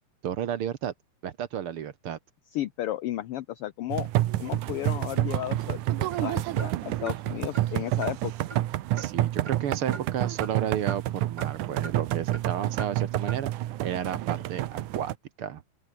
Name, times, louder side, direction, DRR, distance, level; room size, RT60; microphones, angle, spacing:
voice 1, 0.2-0.9 1.2-2.2 9.0-13.5 13.8-15.6, right 9 dB, 55° right, 1.7 m, -32 dB
voice 2, 2.5-4.1 4.4-5.8 6.2-8.3, left 13 dB, 70° left, 1.4 m, -33 dB
sound 1, 3.9-15.2, right 14 dB, 85° right, 2.5 m, -29 dB
sound 2, 6.1-6.3 6.6-6.7 7.1-7.2 7.5-7.7 8.0-8.1 8.5-8.6 9.0-9.1 9.5-9.6 9.9-10.1 10.4-10.5 10.9-11.0 11.4-11.5 11.8-12.0 12.3-12.5 12.8-12.9 13.3-13.4, right 3 dB, 30° right, 4.4 m, -41 dB
open air
omnidirectional pair, 3.5 m